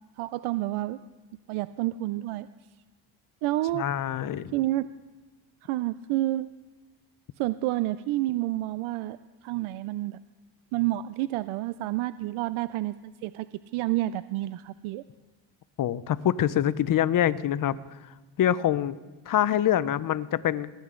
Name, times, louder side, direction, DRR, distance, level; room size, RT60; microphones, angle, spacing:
voice 1, 0.2-1.0 1.5-2.5 3.4-3.9 4.5-4.9 5.6-6.5 7.4-9.2 9.4-10.2 10.7-13.5 13.7-15.0, right 16 dB, 75° right, 14 dB, 0.5 m, -29 dB
voice 2, 3.7-4.5 15.8-17.8 18.4-19.0 19.3-20.7, left 11 dB, 40° left, 17 dB, 0.6 m, -25 dB
18.5 x 10.0 x 3.8 m, 1.2 s
cardioid pair, 85°, 49 cm